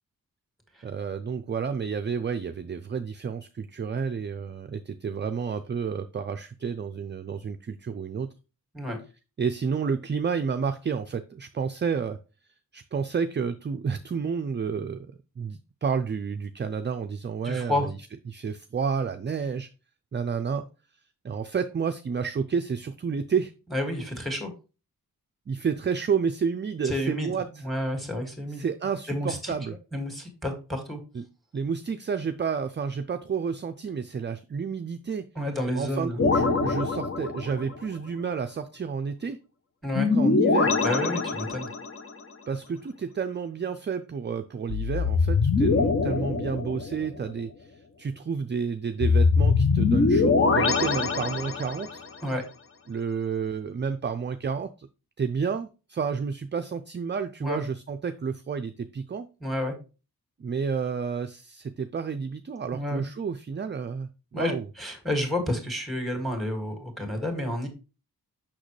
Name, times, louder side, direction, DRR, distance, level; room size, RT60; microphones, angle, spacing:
voice 1, 0.8-8.3 9.4-12.2 12.7-18.0 18.3-19.7 20.1-20.7 21.2-23.5 25.5-27.6 28.5-29.8 31.1-31.3 31.5-35.3 35.8-39.4 40.1-40.8 42.5-52.0 52.9-54.9 55.2-59.3 60.4-64.7, right 6 dB, 30° right, 8 dB, 0.4 m, -30 dB
voice 2, 17.4-17.9 23.7-24.5 26.8-27.3 27.6-28.6 29.1-29.5 29.9-31.0 35.4-36.2 39.8-40.1 40.8-41.7 52.2-52.4 57.4-57.6 59.4-59.7 62.7-63.0 64.3-67.7, left 1 dB, ahead, 4 dB, 2.1 m, -30 dB
sound 1, 36.2-37.7 39.9-42.0 44.7-47.2 49.0-52.0, left 4 dB, 40° left, 0.8 m, -23 dB
6.4 x 5.9 x 3.2 m, 0.32 s
wide cardioid pair, 110°, 36 cm